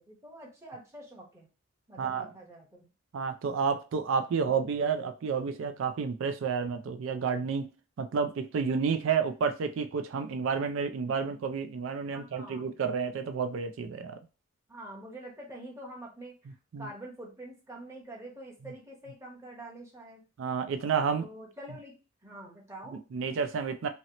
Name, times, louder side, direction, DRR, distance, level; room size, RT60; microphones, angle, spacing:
voice 1, 0.0-1.5 1.9-2.9 12.1-12.8 14.7-20.2 21.1-23.0, right 1 dB, 15° right, 0.9 m, -46 dB
voice 2, 2.0-2.3 3.1-7.6 8.0-14.2 16.7-16.9 20.4-21.3 22.9-23.9, right 6 dB, 70° right, 0.3 m, -30 dB
2.9 x 2.8 x 2.8 m
head